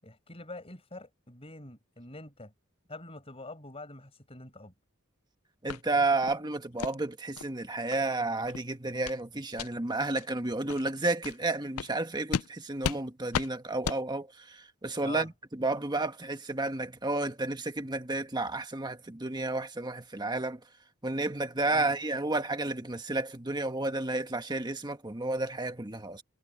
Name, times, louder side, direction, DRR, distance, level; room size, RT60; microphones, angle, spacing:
voice 1, 0.0-2.5 2.9-4.7 15.0-15.3 21.7-21.9, left 2 dB, 25° left, 5.5 m, -45 dB
voice 2, 5.6-20.6 21.0-26.2, right 2 dB, 20° right, 1.5 m, -31 dB
sound 1, 5.7-5.8 6.2-6.4 6.8-6.9 7.4-7.5 7.9-8.0 8.4-8.6 9.0-9.2 9.5-9.7 10.2-10.3 10.7-10.8 11.2-11.4 11.8-11.9 12.3-12.5 12.8-13.0 13.3-13.5 13.8-14.0, left 6 dB, 90° left, 0.5 m, -33 dB
head